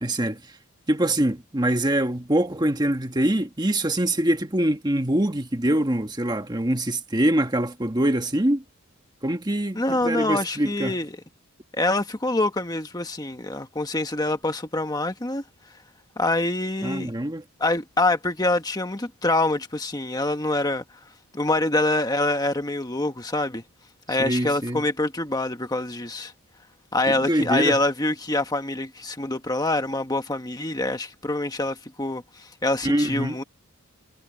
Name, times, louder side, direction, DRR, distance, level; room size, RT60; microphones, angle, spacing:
voice 1, 0.0-0.4 0.9-8.6 9.2-11.0 16.8-17.4 24.2-24.8 27.1-27.8 32.8-33.4, right 1 dB, 20° right, 1.5 m, -24 dB
voice 2, 9.7-11.1 11.8-15.4 16.2-17.1 17.6-20.8 21.3-23.6 24.1-26.3 26.9-33.4, left 2 dB, 20° left, 1.4 m, -25 dB
head